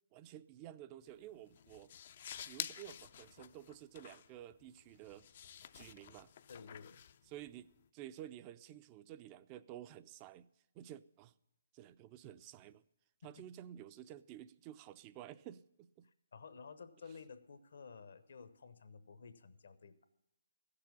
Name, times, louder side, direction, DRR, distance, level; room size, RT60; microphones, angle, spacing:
voice 1, 0.1-1.9 2.4-5.3 5.7-6.3 7.3-10.5 10.7-11.3 11.7-12.8 13.2-16.1, right 12 dB, 25° right, 0.4 m, -52 dB
sound 1, 1.0-7.9, left 9 dB, 45° left, 0.4 m, -50 dB
voice 2, 6.5-7.0 13.2-13.3 16.3-20.0, left 5 dB, 70° left, 1.0 m, -53 dB
15.0 x 6.8 x 7.0 m
hypercardioid pair, 145°, 0 cm